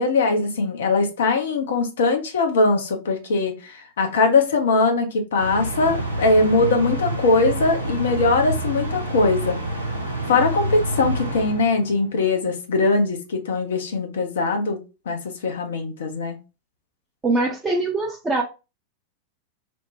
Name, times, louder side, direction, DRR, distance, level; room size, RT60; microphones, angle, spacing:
voice 1, 0.0-9.6 10.3-14.8 15.1-16.4, left 3 dB, 60° left, 0.7 m, -21 dB
sound 1, 5.4-12.2, right 1 dB, 85° right, 0.7 m, -28 dB
voice 2, 17.2-18.4, right 2 dB, 15° right, 0.6 m, -22 dB
3.0 x 2.1 x 3.0 m
figure-of-eight pair, 90°, 0 cm